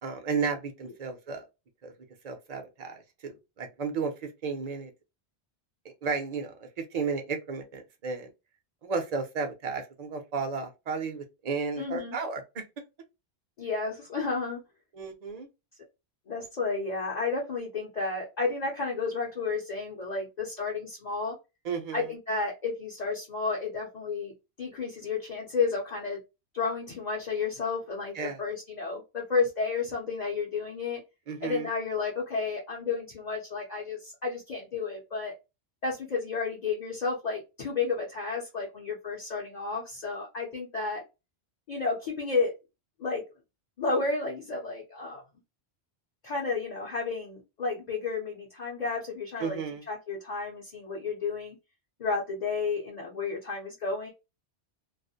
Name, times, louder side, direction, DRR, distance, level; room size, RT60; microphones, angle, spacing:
voice 1, 0.0-1.5 1.8-1.9 2.2-4.9 6.0-8.3 8.8-12.6 14.9-15.5 21.6-22.1 28.1-28.4 31.3-31.7 49.4-49.8, right 5 dB, 45° right, 0.6 m, -33 dB
voice 2, 11.8-12.2 13.6-14.6 16.3-21.4 21.9-24.3 24.6-26.2 26.5-31.0 31.4-35.4 35.8-41.0 41.7-42.5 43.0-43.2 43.8-45.2 46.2-49.6 49.9-51.6 52.0-54.1, left 4 dB, 45° left, 0.7 m, -32 dB
2.4 x 2.0 x 2.6 m
omnidirectional pair, 1.1 m